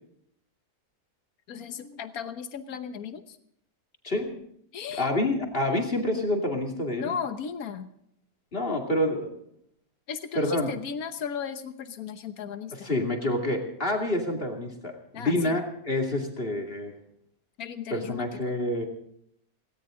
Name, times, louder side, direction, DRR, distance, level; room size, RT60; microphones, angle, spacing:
voice 1, 1.5-3.4 4.7-5.1 6.9-7.9 10.1-12.9 15.1-15.6 17.6-18.5, left 7 dB, 70° left, 9 dB, 1.5 m, -36 dB
voice 2, 5.0-7.1 8.5-9.4 10.3-10.7 12.8-16.9 17.9-18.8, left 1 dB, 35° left, 1 dB, 2.7 m, -28 dB
18.5 x 17.5 x 3.8 m, 0.71 s
omnidirectional pair, 1.6 m